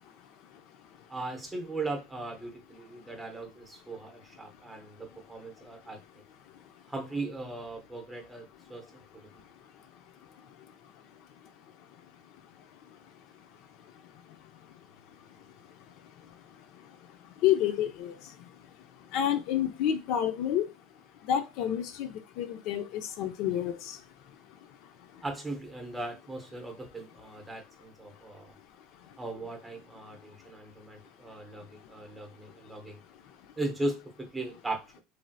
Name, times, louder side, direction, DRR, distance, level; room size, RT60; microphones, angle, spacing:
voice 1, 1.1-6.0 6.9-8.9 9.1-9.4 25.2-28.5 29.2-33.0 33.6-35.0, right 2 dB, 10° right, 2 dB, 0.7 m, -38 dB
voice 2, 17.4-18.1 19.1-20.6 21.3-22.1 22.4-24.0, left 10 dB, 60° left, 8 dB, 0.4 m, -28 dB
3.1 x 2.7 x 2.2 m, 0.26 s
supercardioid pair, 135°, 0 cm